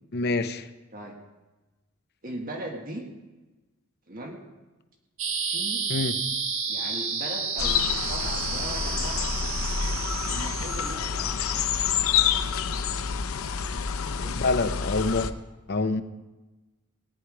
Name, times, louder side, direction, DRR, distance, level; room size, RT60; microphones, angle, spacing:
voice 1, 0.1-0.6 5.9-6.2 14.3-15.3 15.7-16.0, left 3 dB, 50° left, 10 dB, 0.7 m, -26 dB
voice 2, 2.2-3.0 4.1-4.4 5.4-5.8 6.7-9.3 10.3-11.5 14.0-14.6, right 1 dB, 40° right, 2 dB, 1.6 m, -39 dB
sound 1, 5.2-10.9, right 5 dB, 65° right, 1.6 m, -31 dB
sound 2, 7.6-15.3, left 7 dB, 80° left, 0.6 m, -28 dB
17.5 x 10.0 x 4.8 m, 1.1 s
head